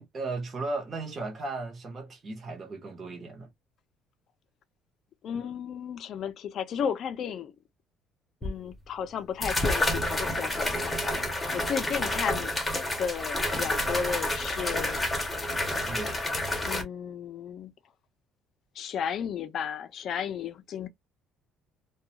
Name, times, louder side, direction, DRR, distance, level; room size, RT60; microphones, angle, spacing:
voice 1, 0.0-3.5 15.9-16.2, right 3 dB, 25° right, 0.8 m, -36 dB
voice 2, 5.2-7.5 8.4-12.5 13.0-15.1 16.6-17.7 18.8-20.9, left 7 dB, 45° left, 0.4 m, -34 dB
sound 1, 8.4-8.5 9.4-16.8, left 1 dB, 10° left, 0.7 m, -29 dB
2.3 x 2.2 x 2.8 m
cardioid pair, 155°, 0 cm